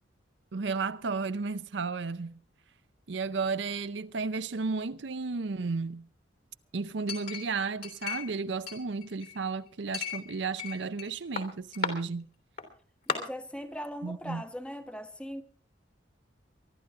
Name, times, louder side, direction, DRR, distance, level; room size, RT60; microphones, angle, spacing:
voice 1, 0.5-2.4 3.1-6.1 6.7-12.3 14.0-14.4, right 4 dB, 70° right, 0.6 m, -33 dB
Chink clink, 7.1-8.4 8.7-9.5 9.9-11.1 11.4-11.9 12.6-12.7 13.1-13.2, left 6 dB, 55° left, 3.3 m, -35 dB
voice 2, 13.1-15.4, equal, 5° left, 1.1 m, -39 dB
23.5 x 12.0 x 3.7 m
head